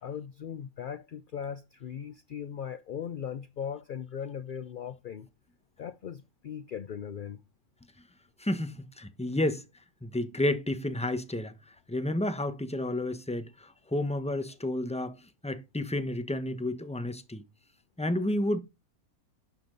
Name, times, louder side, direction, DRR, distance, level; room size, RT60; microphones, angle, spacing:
voice 1, 0.0-5.3 5.8-7.4, left 8 dB, 60° left, 0.5 m, -38 dB
voice 2, 8.4-9.6 10.0-11.5 11.9-15.2 15.4-17.4 18.0-18.6, left 1 dB, 5° left, 1.0 m, -31 dB
11.5 x 6.9 x 4.0 m
omnidirectional pair, 1.5 m